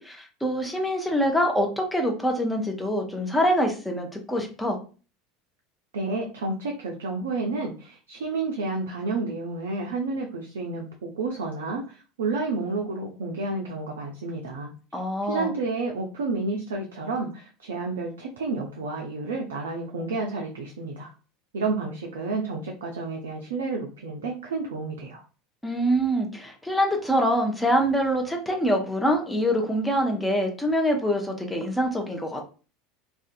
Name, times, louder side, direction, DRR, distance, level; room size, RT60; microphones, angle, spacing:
voice 1, 0.0-4.8 14.9-15.5 25.6-32.5, equal, 5° left, 2 dB, 0.6 m, -25 dB
voice 2, 5.9-14.7 15.3-21.1 21.5-25.2, right 3 dB, 65° right, 1 dB, 0.4 m, -30 dB
2.5 x 2.3 x 2.5 m, 0.36 s
figure-of-eight pair, 75°, 0 cm